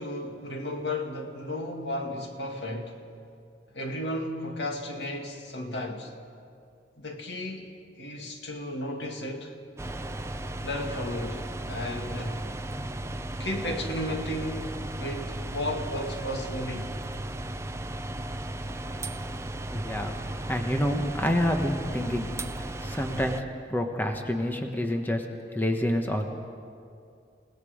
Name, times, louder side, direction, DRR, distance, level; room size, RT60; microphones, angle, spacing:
voice 1, 0.0-3.0 3.7-6.1 7.0-7.7 8.0-9.5 10.6-12.5 13.4-17.0, left 1 dB, 80° left, 2.1 m, -34 dB
sound 1, 9.8-23.4, right 1 dB, 15° right, 0.5 m, -35 dB
voice 2, 19.7-22.3 22.6-25.3 25.5-26.3, equal, 10° left, 1.2 m, -28 dB
29.0 x 18.5 x 5.1 m
head